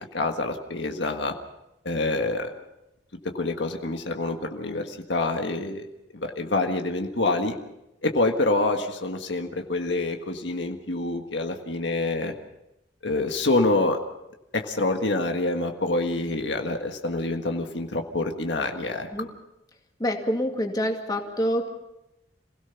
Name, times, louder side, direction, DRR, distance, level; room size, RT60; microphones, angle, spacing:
voice 1, 0.0-1.3 1.8-2.5 3.3-5.9 6.1-7.6 8.0-12.3 13.0-14.0 14.5-19.1, left 2 dB, 75° left, 4 dB, 1.7 m, -26 dB
voice 2, 20.0-21.7, equal, 20° left, 2 dB, 2.3 m, -26 dB
27.0 x 17.0 x 5.9 m, 0.90 s
head